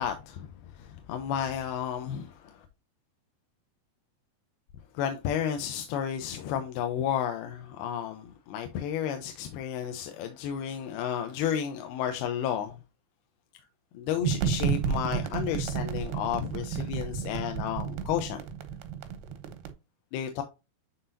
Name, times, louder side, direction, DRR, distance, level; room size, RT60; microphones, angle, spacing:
voice 1, 0.0-2.7 4.9-12.8 13.9-18.4 20.1-20.4, left 9 dB, 90° left, 2.6 m, -32 dB
sound 1, 14.2-19.7, right 7 dB, 90° right, 2.9 m, -31 dB
9.8 x 3.9 x 2.5 m
omnidirectional pair, 4.4 m